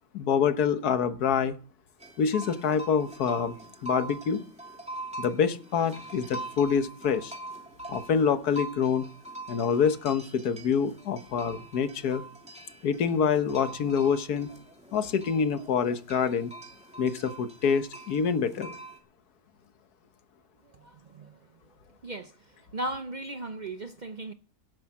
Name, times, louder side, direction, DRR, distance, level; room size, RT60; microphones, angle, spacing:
voice 1, 0.1-1.6 2.2-3.5 3.8-4.4 5.2-7.3 7.9-9.1 9.5-12.2 12.8-14.5 14.9-16.5 17.0-18.7, left 6 dB, 85° left, 1.6 m, -26 dB
sound 1, 2.0-19.0, right 2 dB, 5° right, 2.8 m, -43 dB
voice 2, 20.7-21.4 22.0-22.3 22.7-24.3, right 2 dB, 50° right, 0.5 m, -36 dB
17.5 x 8.9 x 6.0 m
omnidirectional pair, 1.6 m